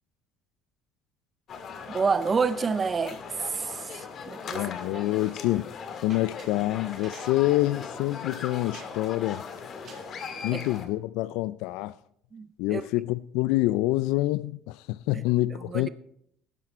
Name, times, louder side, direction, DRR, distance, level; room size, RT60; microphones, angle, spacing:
sound 1, 1.5-10.9, left 6 dB, 45° left, 1.8 m, -39 dB
voice 1, 1.9-4.6 4.9-5.0 10.5-10.6 12.3-12.8 15.1-15.2 15.6-15.9, right 5 dB, 25° right, 0.5 m, -29 dB
voice 2, 4.5-5.7 6.0-9.4 10.4-11.9 12.6-15.9, left 17 dB, 80° left, 0.3 m, -27 dB
sound 2, 5.0-10.6, right 4 dB, 45° right, 3.0 m, -53 dB
12.5 x 11.0 x 4.3 m
cardioid pair, 115°, 0 cm